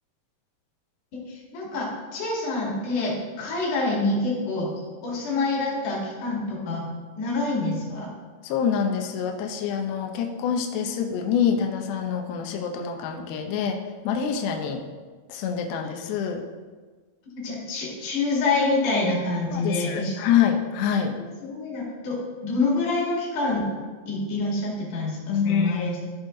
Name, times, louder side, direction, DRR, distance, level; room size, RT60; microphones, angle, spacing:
voice 1, 1.1-6.8 7.2-8.1 17.3-20.2 21.0-23.7 24.1-26.0, left 2 dB, 50° left, -4 dB, 3.4 m, -27 dB
voice 2, 8.4-14.8 15.3-16.4 19.5-21.1 25.3-25.9, left 7 dB, 80° left, 3 dB, 2.3 m, -26 dB
13.5 x 5.0 x 3.8 m, 1.4 s
omnidirectional pair, 5.1 m